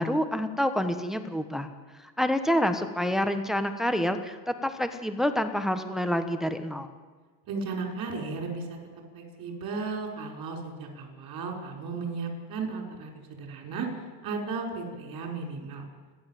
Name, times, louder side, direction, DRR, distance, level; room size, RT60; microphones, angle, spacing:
voice 1, 0.0-1.7 2.0-6.9, equal, ahead, 8 dB, 1.2 m, -27 dB
voice 2, 7.5-8.8 9.1-13.1 13.4-15.8, right 4 dB, 45° right, 2 dB, 5.9 m, -35 dB
30.0 x 11.5 x 7.7 m, 1.4 s
cardioid pair, 130°, 47 cm